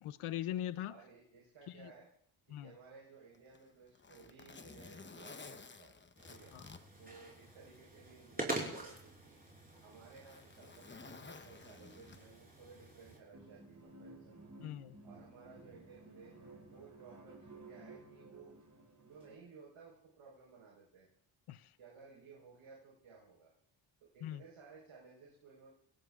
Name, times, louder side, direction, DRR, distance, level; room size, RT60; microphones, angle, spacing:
voice 1, 0.0-0.9 1.8-1.9 2.5-2.7 6.5-6.6 14.6-15.0 21.5-21.6 24.2-24.4, left 12 dB, 80° left, 0.8 m, -40 dB
voice 2, 0.9-2.1 2.5-6.0 6.3-6.5 7.0-9.4 9.8-14.5 15.0-18.6 19.0-21.1 21.8-23.5 24.0-25.7, right 5 dB, 75° right, 4.9 m, -58 dB
Zipper (clothing), 3.3-7.8 8.2-8.3 9.1-12.6 13.7-13.9, left 4 dB, 20° left, 1.0 m, -54 dB
sound 1, 6.2-13.2, right 2 dB, 15° right, 5.5 m, -46 dB
sound 2, 13.3-19.4, right 2 dB, 35° right, 7.0 m, -55 dB
29.5 x 17.5 x 2.5 m
cardioid pair, 85°, 50 cm